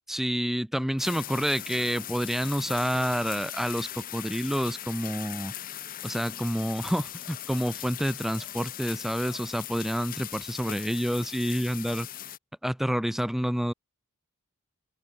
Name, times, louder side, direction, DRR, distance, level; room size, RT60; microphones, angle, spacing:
voice 1, 0.1-5.5 6.0-12.1 12.6-13.7, equal, ahead, 0.3 m, -28 dB
sound 1, 1.0-12.4, left 12 dB, 40° left, 1.0 m, -39 dB
open air
head